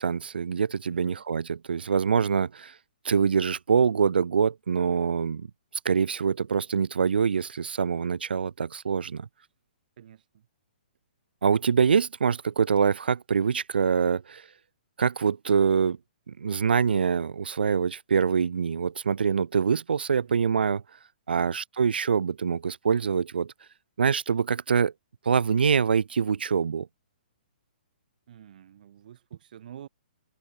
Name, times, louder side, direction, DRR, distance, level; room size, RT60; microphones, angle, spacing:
voice 1, 0.0-2.7 3.0-5.5 5.8-9.3 11.4-14.4 15.0-16.0 16.3-20.8 21.3-23.5 24.0-24.9 25.3-26.9, right 6 dB, 85° right, 0.5 m, -25 dB
voice 2, 0.9-1.2 10.0-10.5 20.2-20.5 21.3-21.6 28.3-29.9, right 10 dB, 60° right, 8.0 m, -48 dB
hypercardioid pair, 135°, 5 cm